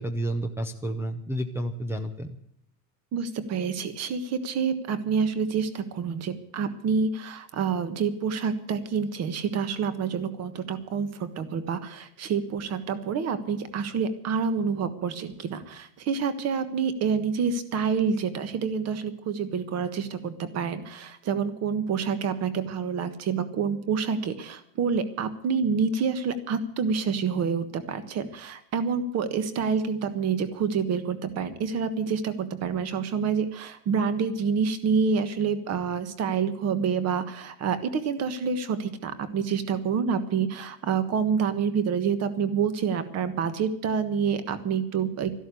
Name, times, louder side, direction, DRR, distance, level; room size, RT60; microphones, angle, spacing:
voice 1, 0.0-2.4, right 1 dB, 5° right, 1 dB, 0.5 m, -30 dB
voice 2, 3.1-45.3, right 6 dB, 30° right, 12 dB, 1.5 m, -27 dB
13.5 x 12.0 x 8.3 m, 0.70 s
supercardioid pair, 150°, 48 cm